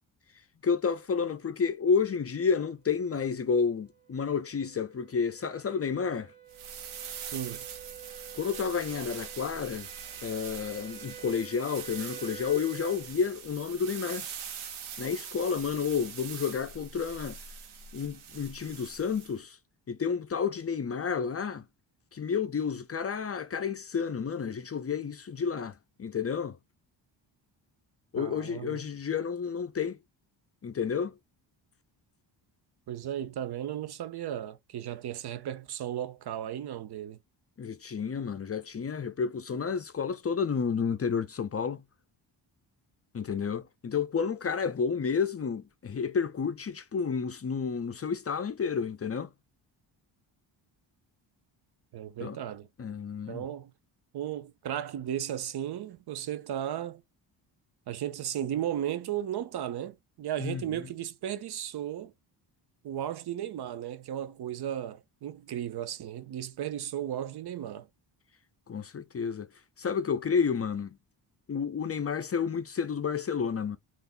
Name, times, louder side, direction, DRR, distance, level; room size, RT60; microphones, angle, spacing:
voice 1, 0.6-6.3 8.3-9.9 10.2-14.3 15.0-17.4 17.9-19.6 19.9-21.6 22.1-26.6 28.1-30.0 30.6-31.1 37.6-41.8 43.1-49.3 52.2-52.4 52.8-53.5 60.4-60.7 68.7-69.5 69.8-71.0 71.5-73.8, left 6 dB, 30° left, 0.6 m, -30 dB
sound 1, 3.2-13.1, right 8 dB, 15° left, 1.5 m, -49 dB
sound 2, 6.5-19.3, right 7 dB, 80° right, 1.1 m, -43 dB
voice 2, 7.3-7.7 28.2-28.8 32.9-37.2 51.9-52.7 53.3-53.7 54.1-57.0 57.9-62.1 62.8-67.9, right 11 dB, 55° right, 0.6 m, -35 dB
3.5 x 2.6 x 2.5 m
cardioid pair, 70°, 48 cm